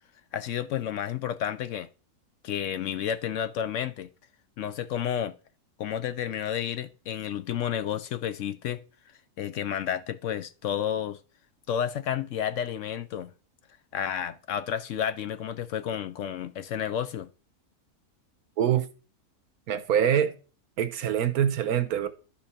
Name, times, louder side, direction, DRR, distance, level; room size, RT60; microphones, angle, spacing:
voice 1, 0.3-1.9 2.4-4.1 4.6-5.4 5.8-8.8 9.4-11.2 11.7-13.3 13.9-17.3, left 9 dB, 65° left, 0.8 m, -31 dB
voice 2, 19.7-20.3 20.8-22.1, right 9 dB, 80° right, 1.4 m, -24 dB
11.5 x 5.7 x 4.2 m
omnidirectional pair, 1.6 m